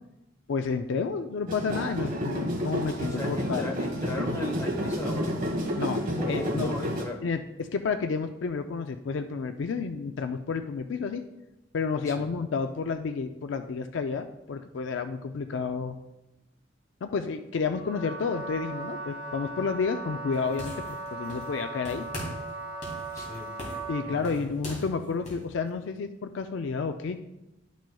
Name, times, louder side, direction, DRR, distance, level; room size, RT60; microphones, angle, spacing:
voice 1, 0.5-3.7 5.8-6.8 7.2-11.2 11.7-16.0 17.0-20.7 21.1-22.1 23.9-27.2, left 5 dB, 65° left, 8 dB, 0.4 m, -30 dB
sound 1, 1.5-7.0, equal, 45° right, 1.3 m, -30 dB
voice 2, 3.1-5.4 6.1-7.2 12.1-12.3 23.1-23.5 24.0-24.5, left 2 dB, 15° left, 0 dB, 1.0 m, -36 dB
Wind instrument woodwind instrument, 17.7-24.2, right 3 dB, 10° right, 2.4 m, -38 dB
sound 2, 20.3-21.6 21.9-22.5 22.8-25.5, equal, 40° left, 2.5 m, -40 dB
11.5 x 6.2 x 2.3 m, 0.93 s
head